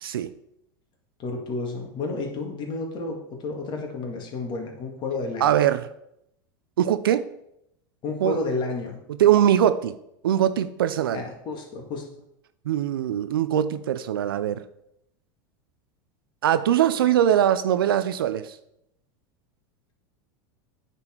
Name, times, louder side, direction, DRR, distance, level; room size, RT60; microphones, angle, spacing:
voice 1, 1.2-5.5 8.0-9.0 11.1-12.0, left 3 dB, 40° left, 1 dB, 2.2 m, -31 dB
voice 2, 5.4-5.9 6.8-7.3 8.2-8.4 9.2-10.0 10.2-11.2 12.7-14.6 16.4-18.5, right 10 dB, 90° right, 13 dB, 0.5 m, -21 dB
8.9 x 4.3 x 4.5 m, 0.79 s
hypercardioid pair, 105°, 12 cm